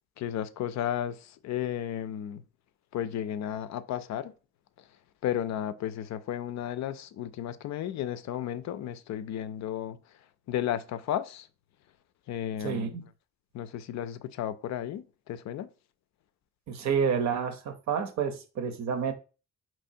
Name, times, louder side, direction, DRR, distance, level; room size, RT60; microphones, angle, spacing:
voice 1, 0.2-2.4 2.9-4.3 4.8-4.9 5.2-10.2 10.5-11.5 12.3-13.0 13.5-15.7, left 10 dB, 65° left, 0.4 m, -33 dB
voice 2, 12.6-13.0 16.7-19.1, right 6 dB, 65° right, 0.7 m, -29 dB
4.4 x 3.0 x 2.6 m
cardioid pair, 90°, 30 cm